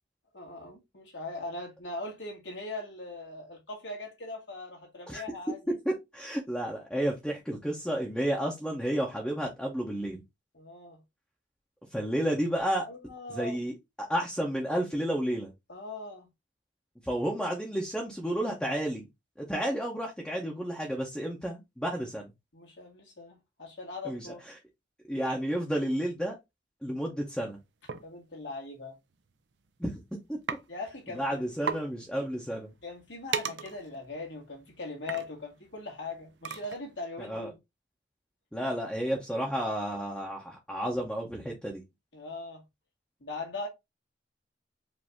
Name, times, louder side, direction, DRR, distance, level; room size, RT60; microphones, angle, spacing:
voice 1, 0.3-5.6 10.5-11.0 12.9-13.7 15.7-16.3 22.5-24.4 28.0-29.0 30.7-31.5 32.8-37.5 42.1-42.6 43.2-43.7, left 3 dB, 85° left, 2.1 m, -40 dB
voice 2, 5.9-10.2 11.9-12.8 13.3-15.5 17.0-19.1 19.4-22.3 24.0-24.3 25.1-26.3 26.8-27.6 29.8-29.9 30.3-30.4 31.1-32.7 37.2-37.5 38.5-41.8, right 1 dB, 5° left, 0.8 m, -31 dB
sound 1, 27.9-28.1 29.1-29.3 29.6-30.0 30.5-30.6 31.0-31.1 31.3-31.4 31.6-31.8 32.3-37.0, right 6 dB, 80° right, 0.6 m, -37 dB
5.0 x 2.7 x 3.5 m
head